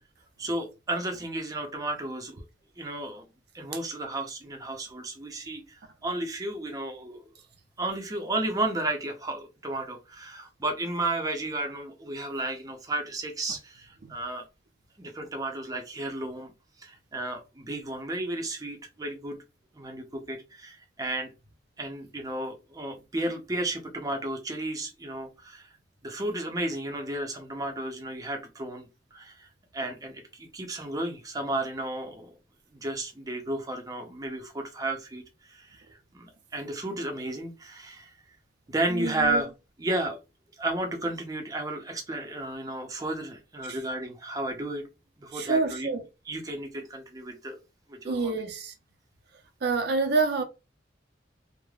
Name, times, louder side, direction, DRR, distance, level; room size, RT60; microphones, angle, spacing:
voice 1, 0.4-2.4 2.8-3.3 3.5-7.3 7.8-14.4 15.0-16.5 16.8-19.4 19.7-21.3 21.8-25.7 26.0-29.5 29.7-32.3 32.7-35.8 36.1-38.4 38.7-39.5 39.8-40.2 40.6-44.8 45.2-45.9 46.3-47.6 47.9-48.3, right 2 dB, 20° right, 0.6 m, -33 dB
voice 2, 38.9-39.4 43.7-43.8 45.3-46.0 48.0-48.7 49.6-50.4, right 4 dB, 65° right, 0.5 m, -27 dB
3.2 x 2.1 x 2.3 m
head